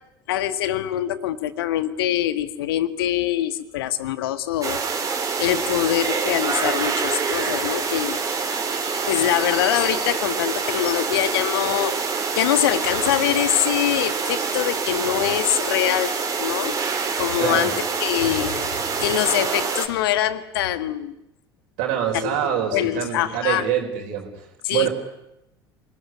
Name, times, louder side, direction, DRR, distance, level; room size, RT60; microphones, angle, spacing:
voice 1, 0.3-4.8 5.4-8.2 8.9-16.8 17.2-21.1 22.1-23.7 24.6-24.9, left 12 dB, 65° left, 13 dB, 1.7 m, -24 dB
sound 1, 4.6-19.9, right 5 dB, 25° right, 4.9 m, -26 dB
voice 2, 17.4-17.7 21.8-24.9, right 10 dB, 55° right, 2 dB, 5.2 m, -25 dB
27.5 x 19.0 x 9.6 m, 0.87 s
figure-of-eight pair, 70°, 13 cm